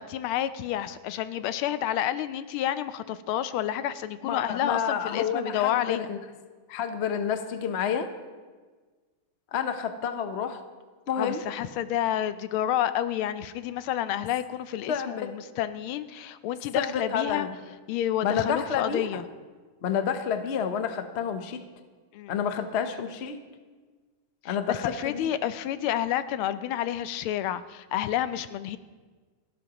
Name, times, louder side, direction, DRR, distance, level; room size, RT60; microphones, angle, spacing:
voice 1, 0.0-6.1 11.1-17.5 17.9-19.2 22.1-22.4 24.4-28.8, left 11 dB, 85° left, 13 dB, 1.5 m, -29 dB
voice 2, 4.2-6.2 6.7-8.1 9.5-10.6 11.1-11.4 14.9-15.3 16.7-17.6 18.2-19.1 19.8-21.6 22.3-23.4 24.4-25.3, left 7 dB, 50° left, 8 dB, 0.7 m, -29 dB
28.5 x 12.5 x 3.0 m, 1.4 s
omnidirectional pair, 2.3 m